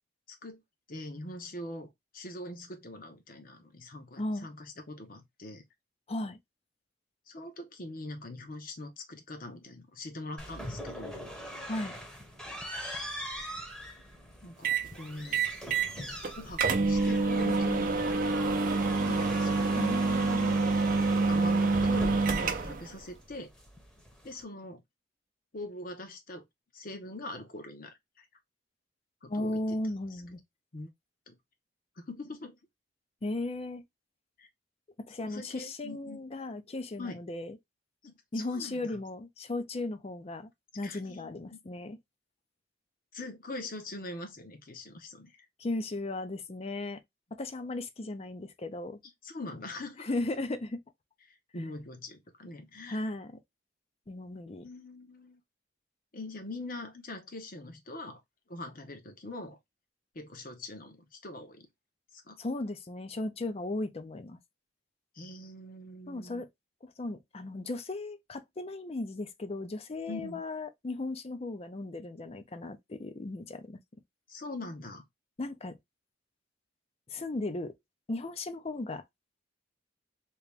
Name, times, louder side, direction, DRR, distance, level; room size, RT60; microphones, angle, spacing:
voice 1, 0.3-0.6 0.9-5.6 7.3-11.3 14.4-15.4 16.4-18.1 19.0-19.8 21.3-23.5 24.2-24.8 25.5-26.4 26.7-28.3 29.2-29.8 30.7-30.9 31.3-31.4 32.0-32.6 34.4-34.5 35.2-36.2 37.0-37.2 38.0-39.0 40.8-41.6 43.1-45.5 49.2-50.1 51.3-53.0 54.6-55.4 56.1-58.2 58.5-59.6 60.1-61.7 62.1-62.4 65.1-66.4 70.1-70.4 74.3-75.0, left 2 dB, 50° left, 0.9 m, -43 dB
voice 2, 4.2-4.5 6.1-6.4 11.7-11.9 19.7-20.6 29.3-30.4 33.2-33.8 35.0-37.6 38.3-40.5 40.8-42.0 45.6-47.0 47.3-49.0 50.0-50.8 52.9-53.4 54.1-54.7 62.4-64.4 66.1-66.5 66.8-73.8 75.4-75.8 77.1-77.7 78.1-79.0, left 2 dB, 35° left, 0.5 m, -36 dB
sound 1, 10.4-24.4, equal, 5° left, 0.9 m, -42 dB
sound 2, 14.6-14.9 15.3-15.9 16.2-16.3 16.6-22.9, right 3 dB, 45° right, 0.6 m, -27 dB
2.9 x 2.9 x 3.3 m
head